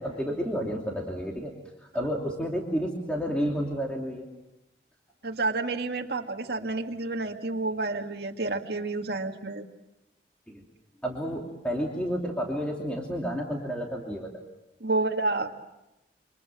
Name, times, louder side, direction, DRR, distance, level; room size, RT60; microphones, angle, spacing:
voice 1, 0.0-1.5 1.8-4.3 10.5-10.6 11.0-14.3, equal, 5° left, -1 dB, 2.8 m, -31 dB
voice 2, 5.2-9.6 14.8-15.5, right 3 dB, 65° right, 2 dB, 2.1 m, -29 dB
28.5 x 25.5 x 7.6 m, 0.91 s
head